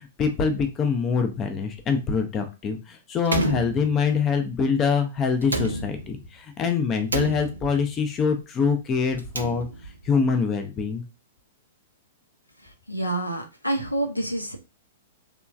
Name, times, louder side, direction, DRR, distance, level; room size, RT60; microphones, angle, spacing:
voice 1, 0.0-11.0, left 5 dB, 25° left, 6 dB, 0.4 m, -25 dB
Slam, 3.2-4.4 5.4-6.3 7.1-8.0 9.1-10.1, right 2 dB, 75° right, 0.4 m, -30 dB
voice 2, 12.6-14.6, right 1 dB, 90° left, 3 dB, 0.6 m, -28 dB
3.0 x 2.2 x 2.3 m, 0.28 s
figure-of-eight pair, 105°, 0 cm